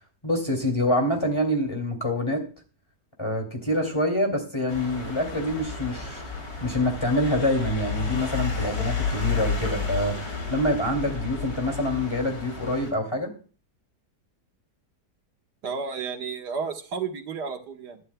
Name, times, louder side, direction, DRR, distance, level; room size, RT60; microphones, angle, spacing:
voice 1, 0.2-2.5 3.2-6.2 6.6-10.2 10.5-13.3, left 1 dB, 15° left, 2 dB, 2.6 m, -26 dB
sound 1, 4.7-12.9, left 5 dB, 65° left, 3.6 m, -31 dB
voice 2, 15.6-18.0, right 5 dB, 80° right, 4 dB, 1.9 m, -32 dB
21.0 x 12.0 x 2.3 m, 0.38 s
omnidirectional pair, 1.7 m